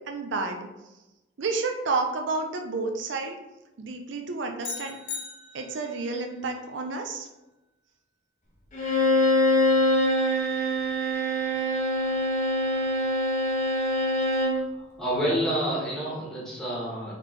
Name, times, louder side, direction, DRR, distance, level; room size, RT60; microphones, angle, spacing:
voice 1, 0.1-0.7 1.4-3.3 3.8-5.0 5.5-7.3, right 3 dB, 80° right, 4 dB, 0.5 m, -30 dB
sound 1, 4.6-6.0, left 6 dB, 65° left, 0.5 m, -37 dB
Bowed string instrument, 8.7-14.6, left 1 dB, 40° left, 1.0 m, -24 dB
voice 2, 14.7-17.1, right 1 dB, 5° left, -7 dB, 1.5 m, -28 dB
4.1 x 3.3 x 3.2 m, 1.0 s
head